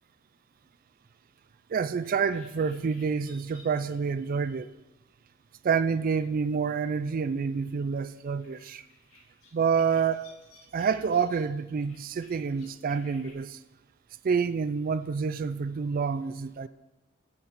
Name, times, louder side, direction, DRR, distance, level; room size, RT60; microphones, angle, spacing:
voice 1, 1.7-4.7 5.6-8.8 9.5-10.3 10.7-13.6 14.2-16.7, right 6 dB, 45° right, 0.3 m, -28 dB
sound 1, 2.3-13.3, left 3 dB, 85° left, 3.2 m, -59 dB
16.0 x 5.9 x 4.0 m
head